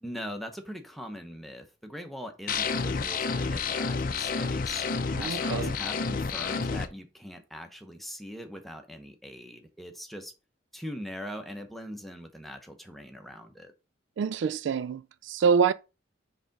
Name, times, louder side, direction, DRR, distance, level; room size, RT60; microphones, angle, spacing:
voice 1, 0.0-4.9 5.2-10.3 10.7-13.7, equal, ahead, 0.8 m, -41 dB
sound 1, 2.5-6.9, left 4 dB, 45° left, 0.5 m, -29 dB
voice 2, 5.1-5.7 14.2-15.7, right 6 dB, 65° right, 0.3 m, -26 dB
4.9 x 3.7 x 5.2 m
head